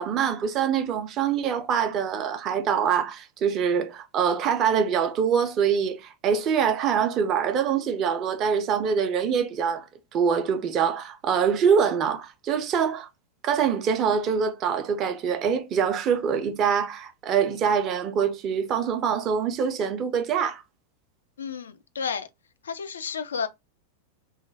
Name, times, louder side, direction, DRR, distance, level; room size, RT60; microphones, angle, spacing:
voice 1, 0.0-13.1 13.4-20.6, right 7 dB, 30° right, 0.4 m, -24 dB
voice 2, 21.4-22.3 22.6-23.5, left 6 dB, 65° left, 0.3 m, -31 dB
2.3 x 2.1 x 3.1 m
figure-of-eight pair, 90°, 0 cm